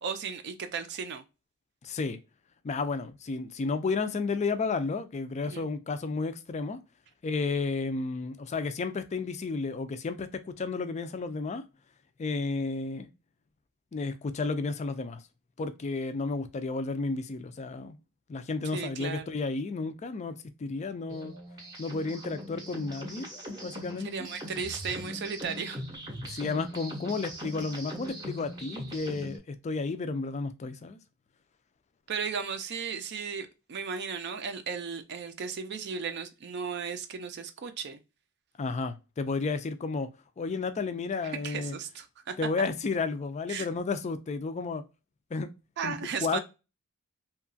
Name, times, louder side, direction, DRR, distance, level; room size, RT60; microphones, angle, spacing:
voice 1, 0.0-1.2 5.4-5.7 18.7-19.4 24.0-25.8 32.1-38.0 41.2-42.4 43.5-43.7 45.8-46.4, right 6 dB, 50° right, 0.4 m, -35 dB
voice 2, 1.8-2.2 2.6-6.8 7.2-11.6 12.2-13.1 13.9-15.2 15.6-18.0 18.3-21.4 21.8-23.3 23.6-24.1 26.2-31.0 38.6-40.1 40.4-41.7 42.4-44.8 45.3-45.5 45.8-45.9 46.2-46.4, left 4 dB, 30° left, 0.3 m, -32 dB
sound 1, 21.1-29.4, equal, 15° right, 0.7 m, -41 dB
2.9 x 2.3 x 2.5 m
head